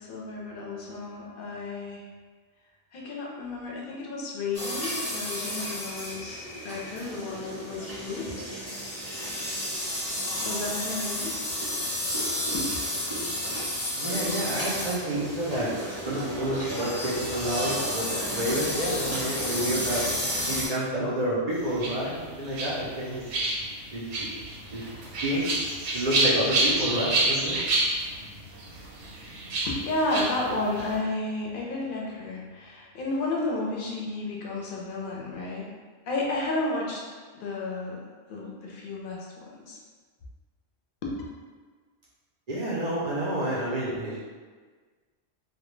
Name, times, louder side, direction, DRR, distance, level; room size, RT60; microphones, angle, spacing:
voice 1, 0.0-2.0 2.9-8.4 10.4-11.5 12.5-12.7 18.4-18.5 18.8-19.0 19.3-19.4 29.6-35.7 36.1-37.0 37.3-38.0 38.3-39.8 41.0-41.1, left 2 dB, 60° left, -3 dB, 0.6 m, -32 dB
sound 1, 4.5-20.7, equal, 15° left, 0.6 m, -31 dB
voice 2, 14.0-15.7 16.0-20.1 20.5-23.4 23.9-24.4 24.7-24.9 25.2-25.6 25.9-27.6 42.5-44.2, equal, 65° right, -7 dB, 0.4 m, -29 dB
sound 2, 21.5-31.0, right 2 dB, 85° right, 0.9 m, -29 dB
2.1 x 2.1 x 3.0 m, 1.5 s
omnidirectional pair, 1.2 m